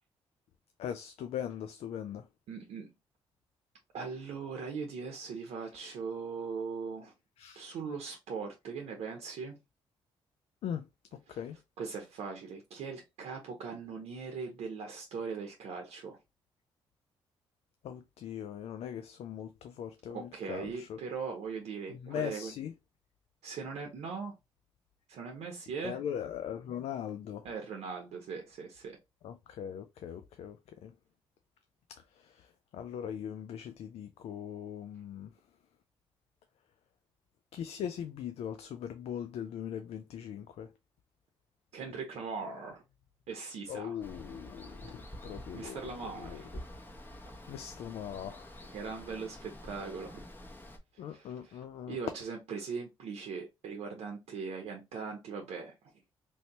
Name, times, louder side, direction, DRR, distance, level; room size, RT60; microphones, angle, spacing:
voice 1, 0.8-2.3 7.4-7.6 10.6-10.9 11.3-11.6 17.8-21.0 21.9-22.7 25.8-27.4 29.2-30.6 30.8-30.9 31.9-32.5 32.7-35.3 37.5-40.7 43.7-46.6 47.5-48.7 51.0-52.0, left 9 dB, 70° left, 0.4 m, -40 dB
voice 2, 2.5-2.9 3.9-7.1 7.6-9.6 11.3-11.4 11.8-16.2 20.1-22.5 23.4-24.3 25.1-26.0 27.4-29.0 41.7-42.8 43.3-44.0 45.5-46.5 47.6-47.7 48.7-50.2 50.9-55.7, right 5 dB, 75° right, 0.8 m, -40 dB
Water, 44.0-50.8, equal, 20° left, 1.0 m, -48 dB
3.0 x 2.7 x 2.9 m
supercardioid pair, 55°, 11 cm